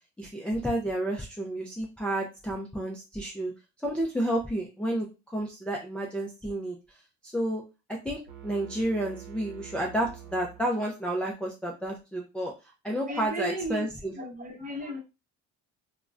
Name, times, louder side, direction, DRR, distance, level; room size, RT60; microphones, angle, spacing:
voice 1, 0.2-3.5 3.8-7.6 8.0-12.5 12.8-14.1, right 1 dB, 5° left, -3 dB, 0.4 m, -31 dB
sound 1, 8.3-11.2, right 11 dB, 70° right, 0.8 m, -46 dB
voice 2, 13.1-13.9 14.2-15.0, right 1 dB, 30° right, 2 dB, 0.8 m, -34 dB
3.7 x 2.1 x 2.3 m, 0.28 s
cardioid pair, 135°, 29 cm